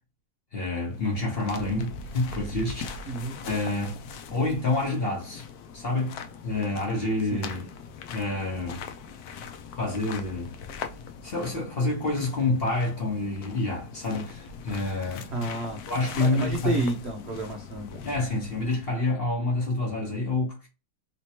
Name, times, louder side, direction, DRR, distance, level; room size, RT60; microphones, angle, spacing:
voice 1, 0.5-3.1 3.4-4.0 4.3-5.4 5.7-6.2 6.4-7.7 8.1-8.8 9.8-10.5 11.2-15.3 15.9-16.8 18.0-20.7, left 2 dB, 40° left, 1.0 m, -28 dB
sound 1, 0.8-19.0, left 5 dB, 70° left, 1.0 m, -41 dB
voice 2, 15.3-15.8 16.2-18.0, right 2 dB, 70° right, 0.6 m, -31 dB
3.3 x 2.9 x 2.8 m
omnidirectional pair, 1.9 m